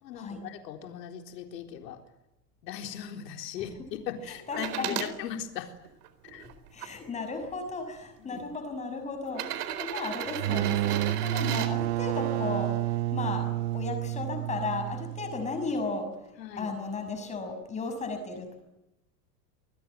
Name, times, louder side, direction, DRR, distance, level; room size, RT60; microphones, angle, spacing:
voice 1, 0.0-2.0 2.6-3.8 4.1-5.8 6.2-6.5 8.2-8.4 16.4-16.7, left 9 dB, 80° left, 5 dB, 4.2 m, -39 dB
voice 2, 4.5-5.0 6.7-16.1 16.6-18.6, left 3 dB, 15° left, 6 dB, 6.3 m, -35 dB
sound 1, 4.5-5.1 5.8-6.9 7.9-8.0 9.3-11.7 13.6-13.7, right 11 dB, 70° right, 4.3 m, -35 dB
sound 2, 10.3-15.8, right 15 dB, 45° right, 0.9 m, -30 dB
28.0 x 21.5 x 9.3 m, 0.93 s
supercardioid pair, 170°, 48 cm